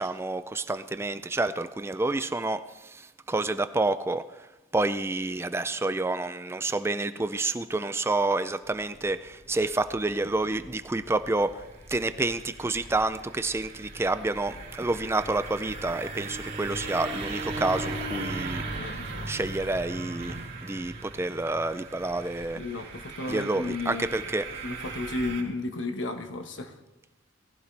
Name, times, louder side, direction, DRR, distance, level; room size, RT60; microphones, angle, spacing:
voice 1, 0.0-4.5 4.7-18.7 19.3-22.6 23.3-24.6, right 2 dB, 15° right, 12 dB, 0.4 m, -29 dB
sound 1, 8.6-25.4, right 2 dB, 45° right, 3.6 m, -38 dB
voice 2, 18.7-19.3 22.5-24.1 24.6-26.8, left 2 dB, 65° left, 6 dB, 1.3 m, -33 dB
18.5 x 15.5 x 3.3 m, 1.1 s
head